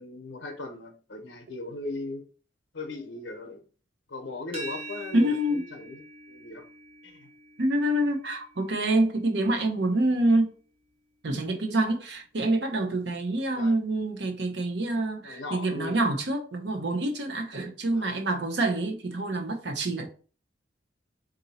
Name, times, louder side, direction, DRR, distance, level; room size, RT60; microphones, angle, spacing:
voice 1, 0.0-2.2 2.7-3.6 4.1-6.0 6.3-6.6 7.0-7.3 13.6-13.7 15.2-16.0 17.9-18.1, left 2 dB, 85° left, 0.8 m, -38 dB
sound 1, 4.5-10.3, right 2 dB, 30° right, 0.8 m, -45 dB
voice 2, 5.1-5.6 7.6-10.5 11.2-20.1, right 1 dB, 65° right, 0.7 m, -26 dB
3.9 x 2.6 x 4.1 m
head